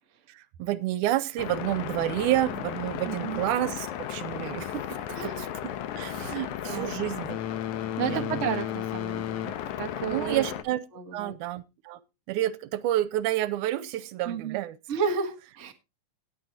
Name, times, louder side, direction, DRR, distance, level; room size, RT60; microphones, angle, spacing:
voice 1, 0.3-5.5 5.9-7.4 8.0-8.3 10.1-10.8 11.1-12.0 12.3-14.8, right 14 dB, 85° right, 15 dB, 2.3 m, -29 dB
sound 1, 1.4-10.6, left 11 dB, 80° left, 2.4 m, -34 dB
voice 2, 3.0-3.4 5.1-5.4 6.2-6.4 6.7-6.9 7.8-10.5 10.9-11.4 14.2-14.6 14.9-15.7, right 6 dB, 40° right, 5 dB, 1.0 m, -32 dB
18.0 x 8.3 x 2.8 m, 0.26 s
omnidirectional pair, 3.5 m